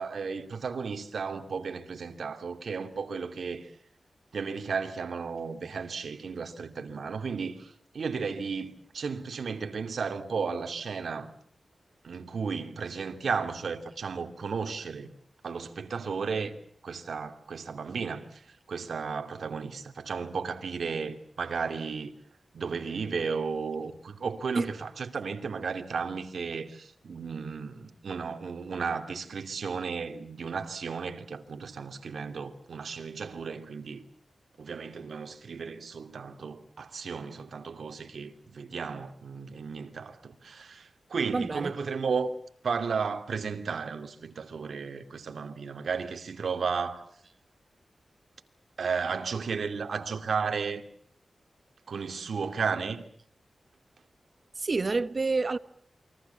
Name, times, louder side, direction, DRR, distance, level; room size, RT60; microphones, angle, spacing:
voice 1, 0.0-3.7 4.3-11.3 12.0-15.1 15.4-16.5 16.8-22.1 22.5-34.0 34.6-42.3 42.6-47.1 48.8-50.8 51.9-53.0, right 5 dB, 75° right, 2.7 m, -34 dB
voice 2, 41.3-41.7 54.6-55.6, right 3 dB, 45° right, 1.3 m, -28 dB
28.5 x 23.0 x 7.1 m
wide cardioid pair, 90°, 0 cm